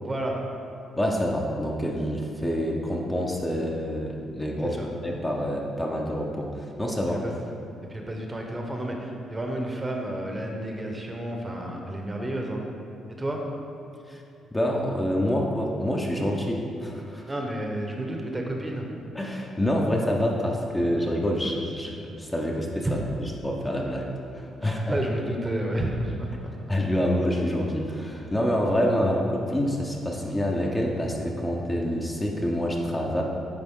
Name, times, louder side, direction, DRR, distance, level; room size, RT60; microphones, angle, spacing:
voice 1, 0.0-0.4 4.6-4.9 7.1-7.3 7.9-12.6 13.2-13.5 17.3-18.9 22.8-23.0 24.6-26.5, right 1 dB, 20° right, 1 dB, 0.8 m, -31 dB
voice 2, 1.0-4.8 5.0-7.2 14.1-14.2 14.5-17.3 19.1-23.0 23.4-25.0 26.7-33.2, equal, 15° left, -1 dB, 0.7 m, -27 dB
9.7 x 3.6 x 3.7 m, 2.6 s
cardioid pair, 90°, 0 cm